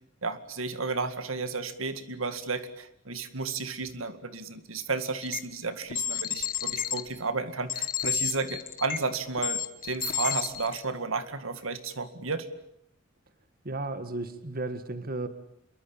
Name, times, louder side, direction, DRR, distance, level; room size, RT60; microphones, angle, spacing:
voice 1, 0.2-12.5, right 4 dB, 75° right, 10 dB, 2.1 m, -33 dB
sound 1, 5.2-5.4 5.9-7.0 7.7-9.0 9.4-10.8, left 9 dB, 45° left, 1.6 m, -30 dB
voice 2, 13.6-15.3, right 2 dB, 45° right, 10 dB, 1.8 m, -34 dB
27.5 x 23.0 x 8.9 m, 0.76 s
head